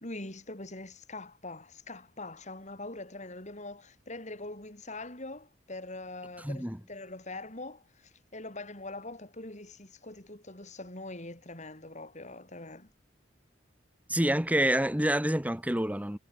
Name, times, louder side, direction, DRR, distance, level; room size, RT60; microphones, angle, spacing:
voice 1, 0.0-12.9, left 2 dB, 40° left, 6.7 m, -43 dB
voice 2, 6.4-6.8 14.1-16.2, right 1 dB, 10° right, 2.0 m, -27 dB
head